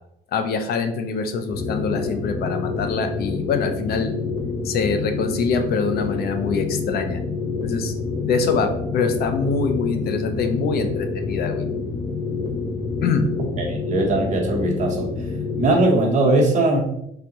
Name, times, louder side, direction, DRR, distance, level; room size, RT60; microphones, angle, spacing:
voice 1, 0.3-4.1 4.6-7.2 7.6-7.9 8.2-11.6 13.0-13.3, left 5 dB, 55° left, 7 dB, 0.5 m, -24 dB
sound 1, 1.5-15.7, left 4 dB, 20° left, 0.7 m, -27 dB
voice 2, 13.4-15.1 15.6-16.8, right 2 dB, 40° right, 0 dB, 1.0 m, -20 dB
3.7 x 3.6 x 2.9 m, 0.77 s
cardioid pair, 150°, 19 cm